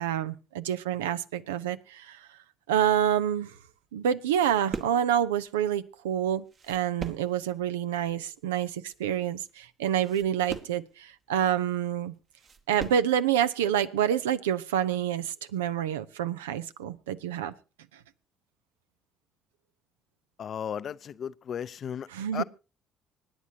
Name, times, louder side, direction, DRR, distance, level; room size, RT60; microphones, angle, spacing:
voice 1, 0.0-2.3 2.7-3.5 3.9-12.1 12.7-17.5 22.1-22.4, right 10 dB, 90° right, 0.6 m, -28 dB
sound 1, 3.6-13.2, right 5 dB, 50° right, 1.6 m, -43 dB
voice 2, 20.4-22.4, left 8 dB, 55° left, 0.5 m, -35 dB
25.0 x 9.7 x 2.8 m
hypercardioid pair, 55°, 0 cm